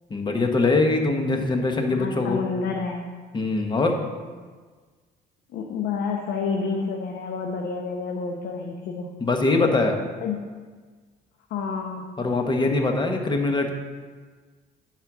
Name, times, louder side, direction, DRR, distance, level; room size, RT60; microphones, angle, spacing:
voice 1, 0.1-2.4 3.3-4.0 9.2-10.0 12.2-13.7, left 3 dB, 25° left, 4 dB, 1.2 m, -22 dB
voice 2, 1.9-3.0 5.5-9.1 10.2-10.4 11.5-12.0, left 5 dB, 75° left, 1 dB, 0.9 m, -29 dB
10.0 x 4.3 x 6.1 m, 1.5 s
cardioid pair, 110°, 17 cm